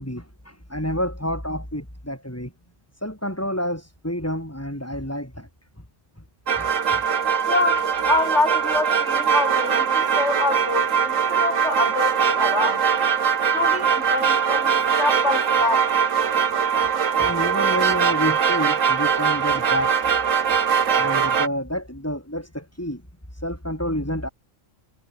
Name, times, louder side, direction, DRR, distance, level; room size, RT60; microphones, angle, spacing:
voice 1, 0.0-2.5 3.0-5.5 6.5-7.0 17.2-19.9 20.9-23.0 23.3-24.3, equal, 10° left, 6.1 m, -29 dB
sound 1, 6.5-21.5, right 7 dB, 70° right, 1.7 m, -21 dB
voice 2, 7.5-12.8 13.5-15.9, left 2 dB, 60° left, 4.4 m, -26 dB
omnidirectional pair, 1.4 m